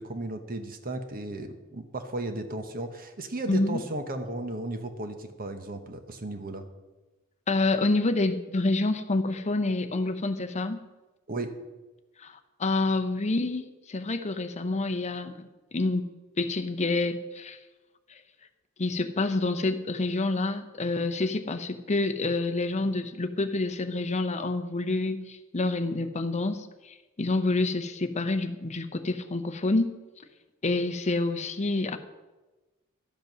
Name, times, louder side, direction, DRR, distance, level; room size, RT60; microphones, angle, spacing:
voice 1, 0.0-6.6 11.3-11.5, right 2 dB, 40° right, 8 dB, 1.0 m, -35 dB
voice 2, 3.5-3.8 7.5-10.8 12.2-16.0 16.4-17.6 18.1-18.2 18.8-30.0 30.6-32.0, left 2 dB, 30° left, 9 dB, 0.7 m, -28 dB
12.0 x 8.1 x 6.1 m, 1.1 s
head